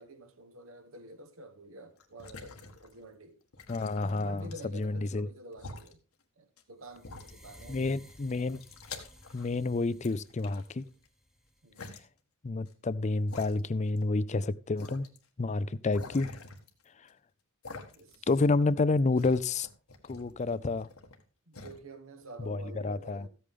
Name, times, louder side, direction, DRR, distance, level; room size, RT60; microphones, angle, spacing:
voice 1, 0.0-3.4 4.2-6.0 6.4-8.1 11.6-12.0 17.9-18.3 21.5-23.3, right 1 dB, 70° right, 1.3 m, -49 dB
sound 1, 2.0-3.1 3.5-4.9 5.5-5.9 6.6-6.7 7.0-7.8 8.1-9.7 10.0-11.1 11.7-12.0 12.7-12.8 13.3-14.0 14.3-14.4 14.8-15.2 15.9-17.1 17.6-18.3 18.6-21.2 21.5-21.8, left 3 dB, 85° left, 1.6 m, -47 dB
voice 2, 3.7-4.5 4.7-5.3 7.7-8.6 9.3-10.8 12.4-15.1 15.4-16.4 18.3-19.7 20.1-20.9 22.5-22.6 22.8-23.3, left 3 dB, 35° left, 0.4 m, -29 dB
sound 2, 6.8-11.9, equal, ahead, 1.0 m, -56 dB
14.5 x 8.4 x 3.6 m
head